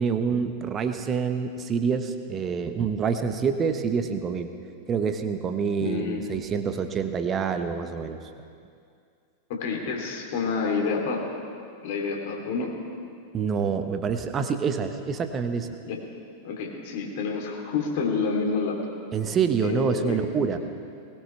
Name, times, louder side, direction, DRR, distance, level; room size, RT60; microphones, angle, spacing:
voice 1, 0.0-4.5 4.9-8.2 13.3-15.8 19.1-20.6, right 6 dB, 25° right, 8 dB, 1.1 m, -27 dB
voice 2, 5.8-6.2 9.5-11.2 11.8-12.7 15.8-16.0 16.4-18.8 19.6-20.2, left 5 dB, 50° left, 0 dB, 3.1 m, -28 dB
20.5 x 18.5 x 3.4 m, 2.3 s
figure-of-eight pair, 90°, 0 cm